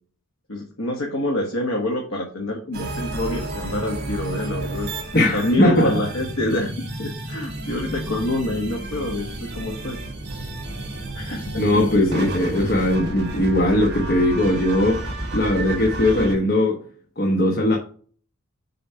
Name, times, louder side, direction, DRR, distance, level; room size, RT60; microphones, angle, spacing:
voice 1, 0.5-4.9 5.3-6.7 7.0-10.0 11.1-11.8, left 1 dB, 75° left, 1.5 m, -26 dB
sound 1, 2.7-16.3, right 1 dB, 50° right, 2.3 m, -31 dB
voice 2, 5.1-6.1 11.5-16.8 17.2-17.8, left 1 dB, 45° left, 1.2 m, -19 dB
6.7 x 4.4 x 5.6 m
head